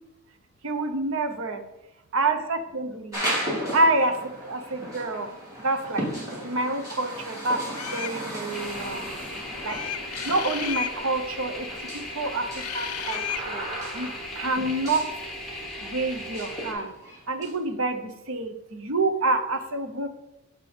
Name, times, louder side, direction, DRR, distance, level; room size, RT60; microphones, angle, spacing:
voice 1, 0.6-1.6 2.1-3.2 3.7-5.3 5.6-6.0 6.4-7.6 7.9-9.1 9.6-9.8 10.2-12.5 12.7-13.6 13.9-15.2 15.8-16.9 17.3-20.1, right 2 dB, 65° right, 7 dB, 0.8 m, -27 dB
sound 1, 3.1-17.5, equal, 15° right, 3.1 m, -36 dB
sound 2, 7.7-8.2 9.7-11.0 12.6-13.5, left 11 dB, 80° left, 0.5 m, -33 dB
sound 3, 8.5-16.7, left 1 dB, ahead, 1.7 m, -38 dB
7.7 x 6.6 x 4.3 m, 0.91 s
head